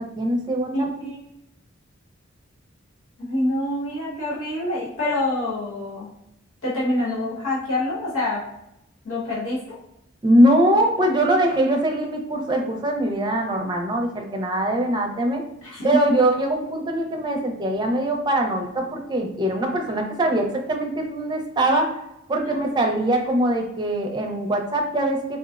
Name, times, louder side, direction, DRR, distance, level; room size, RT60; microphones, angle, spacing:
voice 1, 0.2-0.9 10.2-15.4 15.8-21.9 22.3-25.4, right 1 dB, 20° right, 2 dB, 0.5 m, -22 dB
voice 2, 0.7-1.2 3.2-6.1 6.6-8.4 9.0-9.8 15.6-16.0 22.4-22.6, left 1 dB, 85° left, -7 dB, 1.1 m, -26 dB
3.9 x 2.0 x 2.4 m, 0.82 s
head